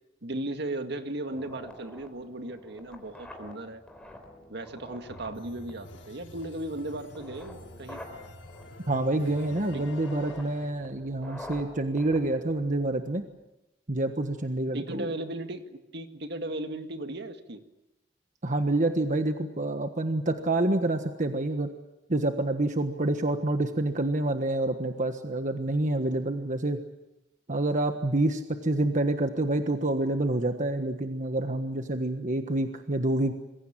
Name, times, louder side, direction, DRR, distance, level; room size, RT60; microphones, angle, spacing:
voice 1, 0.2-3.8 4.5-8.0 9.7-9.9 14.7-17.6, right 1 dB, 65° right, 7 dB, 2.0 m, -36 dB
sound 1, 1.3-13.3, left 1 dB, 5° left, 4.2 m, -48 dB
sound 2, 5.1-10.7, left 2 dB, 80° left, 2.0 m, -48 dB
voice 2, 8.9-13.2 13.9-15.1 18.4-21.7 22.1-26.8 27.5-33.3, right 2 dB, 45° right, 6 dB, 1.4 m, -27 dB
27.0 x 22.0 x 7.5 m, 0.95 s
head